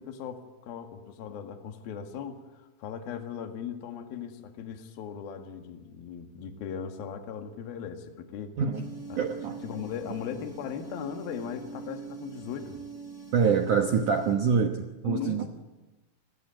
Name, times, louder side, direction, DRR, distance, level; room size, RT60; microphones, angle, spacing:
voice 1, 0.0-8.6 9.1-9.2 9.6-12.8 15.0-15.5, left 8 dB, 60° left, 5 dB, 3.5 m, -38 dB
voice 2, 8.6-8.9 9.2-9.6 13.3-15.5, right 6 dB, 65° right, 5 dB, 2.1 m, -25 dB
sound 1, 8.7-14.3, right 4 dB, 25° left, 8.2 m, -43 dB
28.5 x 20.0 x 9.1 m, 1.1 s
omnidirectional pair, 5.2 m